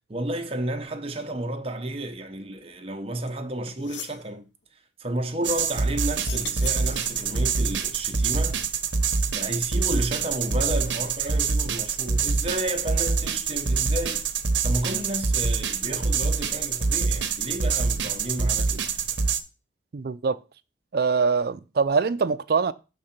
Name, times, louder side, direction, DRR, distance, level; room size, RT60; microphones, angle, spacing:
voice 1, 0.1-4.4 5.0-8.6 9.3-14.3 14.6-18.8, right 1 dB, 30° right, 0.8 m, -32 dB
sound 1, 3.3-3.4 3.7-4.2 6.1-7.5, left 8 dB, 70° left, 0.6 m, -40 dB
sound 2, 5.4-19.4, right 5 dB, 70° right, 0.8 m, -25 dB
voice 2, 19.9-20.4 20.9-22.7, right 5 dB, 55° right, 0.4 m, -23 dB
6.4 x 3.7 x 5.8 m
head